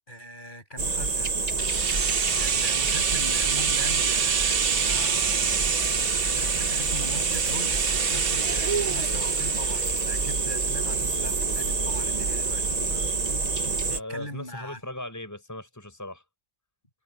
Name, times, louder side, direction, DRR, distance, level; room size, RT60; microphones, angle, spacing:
voice 1, 0.0-1.4 2.4-5.7 6.1-12.8 13.9-14.8, equal, 25° left, 6.8 m, -40 dB
sound 1, 0.8-14.0, right 4 dB, 30° right, 0.8 m, -27 dB
sound 2, 1.6-11.4 11.7-11.8, right 7 dB, 70° right, 0.5 m, -28 dB
voice 2, 13.9-16.2, left 1 dB, 10° left, 6.4 m, -39 dB
omnidirectional pair, 2.1 m